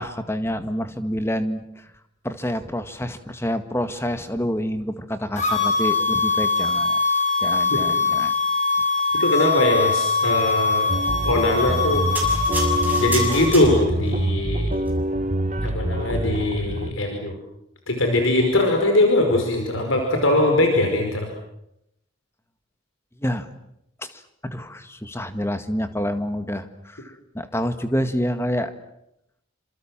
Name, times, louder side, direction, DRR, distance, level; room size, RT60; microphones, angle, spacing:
voice 1, 0.0-1.9 2.2-7.0 7.4-8.3 9.1-9.2 23.2-23.5 24.0-28.7, equal, 10° left, 9 dB, 1.8 m, -28 dB
sound 1, 5.4-13.5, left 4 dB, 35° left, 7.1 m, -22 dB
voice 2, 9.2-10.9 11.2-12.1 13.0-14.7 15.6-17.4 17.9-21.3, left 1 dB, 80° left, 3 dB, 5.1 m, -21 dB
sound 2, 10.9-16.9, right 1 dB, 35° right, 1.4 m, -26 dB
sound 3, 12.2-14.1 14.8-14.9, right 4 dB, 10° right, 7.1 m, -31 dB
29.0 x 26.5 x 7.5 m, 0.82 s
head